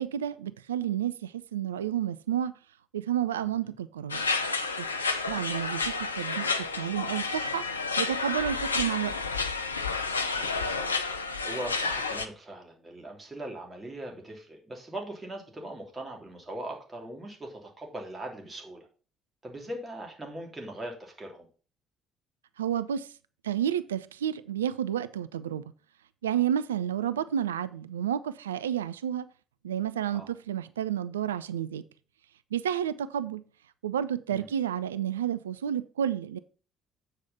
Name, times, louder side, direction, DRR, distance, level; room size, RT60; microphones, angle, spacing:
voice 1, 0.0-2.5 2.9-4.2 5.3-7.6 8.0-9.2 22.6-23.1 23.4-25.6 26.2-29.3 29.6-31.8 32.5-33.4 33.8-36.4, right 10 dB, 80° right, 0.3 m, -30 dB
voice 2, 3.4-3.7 10.4-18.9 19.4-21.5 30.1-30.3 34.3-34.5, right 1 dB, 25° right, 3.1 m, -41 dB
sound 1, 4.1-12.3, left 4 dB, 85° left, 0.5 m, -30 dB
7.8 x 4.9 x 5.5 m
figure-of-eight pair, 50°, 0 cm